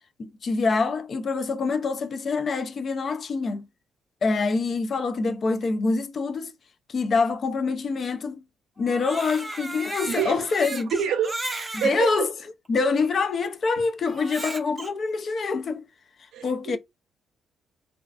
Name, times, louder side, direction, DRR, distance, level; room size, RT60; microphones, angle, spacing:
voice 1, 0.2-3.7 4.2-6.5 6.9-8.4 8.8-10.9 11.7-12.3 12.7-15.8 16.4-16.8, left 4 dB, 50° left, 0.4 m, -25 dB
Crying sobbing, 8.8-11.9 12.7-12.8 14.1-14.9, right 2 dB, 20° right, 0.5 m, -35 dB
voice 2, 10.1-10.5 10.9-12.3 16.3-16.8, right 8 dB, 90° right, 0.6 m, -28 dB
2.4 x 2.3 x 2.3 m
cardioid pair, 90°, 0 cm